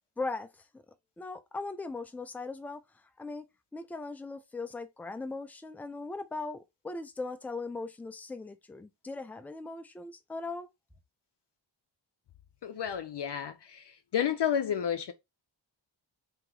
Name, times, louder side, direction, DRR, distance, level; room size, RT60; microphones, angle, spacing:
voice 1, 0.2-0.5 0.7-0.8 1.2-2.8 3.2-3.5 3.7-10.7, left 3 dB, 5° left, 0.3 m, -39 dB
voice 2, 12.6-15.1, left 8 dB, 60° left, 0.6 m, -31 dB
3.0 x 2.9 x 3.7 m
wide cardioid pair, 125°, 48 cm